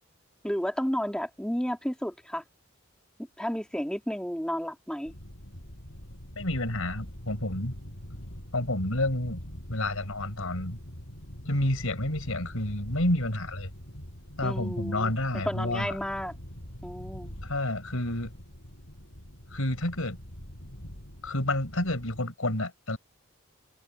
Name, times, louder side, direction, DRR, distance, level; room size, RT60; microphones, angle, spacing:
voice 1, 0.4-2.4 3.4-5.1 14.4-15.1 15.5-16.3 16.8-17.3, equal, 5° left, 2.5 m, -32 dB
sound 1, 5.1-22.2, equal, 60° left, 5.8 m, -44 dB
voice 2, 6.4-7.8 8.5-9.4 9.7-10.8 11.4-13.7 14.4-16.0 17.4-18.3 19.5-20.2 21.2-23.0, left 1 dB, 85° left, 4.3 m, -29 dB
head